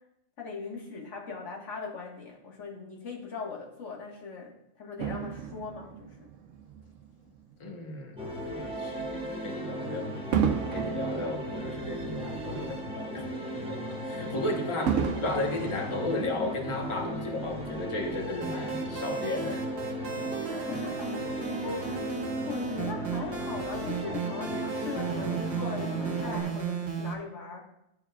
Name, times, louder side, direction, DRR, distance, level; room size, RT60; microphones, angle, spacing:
voice 1, 0.4-6.3 20.5-27.7, left 4 dB, 60° left, -2 dB, 1.7 m, -40 dB
Fireworks, 5.0-7.6 8.2-8.4 10.3-12.8 13.2-13.3 14.9-16.7 17.5-17.6, right 7 dB, 70° right, 0.9 m, -33 dB
voice 2, 7.6-10.2 10.7-19.7 20.7-20.9, left 2 dB, 25° left, 1 dB, 0.9 m, -35 dB
sound 1, 8.2-26.4, right 1 dB, 5° right, 0.7 m, -36 dB
sound 2, 18.4-27.1, right 5 dB, 50° right, 1.2 m, -35 dB
12.5 x 4.7 x 2.3 m, 0.82 s
omnidirectional pair, 1.4 m